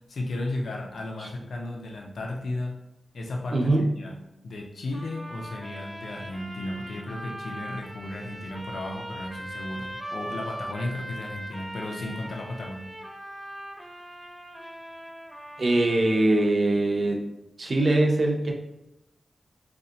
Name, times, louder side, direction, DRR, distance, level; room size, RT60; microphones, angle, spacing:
voice 1, 0.1-2.8 3.1-3.7 4.0-12.9, left 2 dB, 80° left, 1 dB, 0.5 m, -34 dB
voice 2, 3.5-3.9 15.6-17.2 17.6-18.5, right 2 dB, 60° right, 2 dB, 0.6 m, -22 dB
sound 1, 4.9-16.5, right 1 dB, 15° right, 0.8 m, -40 dB
4.2 x 2.4 x 2.8 m, 0.88 s
cardioid pair, 45°, 0 cm